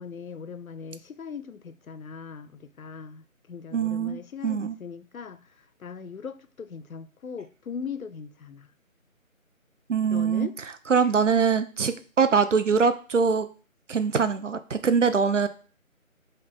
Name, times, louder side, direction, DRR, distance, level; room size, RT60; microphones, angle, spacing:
voice 1, 0.0-8.7 10.1-10.5, left 6 dB, 75° left, 11 dB, 0.6 m, -39 dB
voice 2, 3.7-4.8 9.9-10.5 10.9-13.5 13.9-15.5, right 5 dB, 60° right, 11 dB, 0.5 m, -23 dB
5.3 x 2.5 x 3.8 m, 0.38 s
figure-of-eight pair, 160°, 42 cm